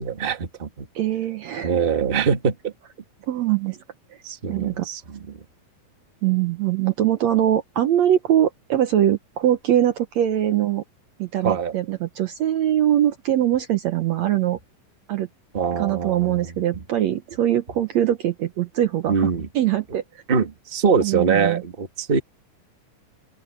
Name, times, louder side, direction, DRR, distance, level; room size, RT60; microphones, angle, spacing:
voice 1, 0.0-0.9 1.6-2.7 4.2-5.4 11.4-11.7 15.5-16.8 19.1-19.5 20.3-22.2, right 6 dB, 30° right, 1.0 m, -23 dB
voice 2, 1.0-1.8 3.3-3.8 4.5-4.9 6.2-10.8 11.2-14.6 15.1-15.3 15.7-20.0 21.0-21.6, right 11 dB, 65° right, 1.8 m, -22 dB
open air
omnidirectional pair, 4.0 m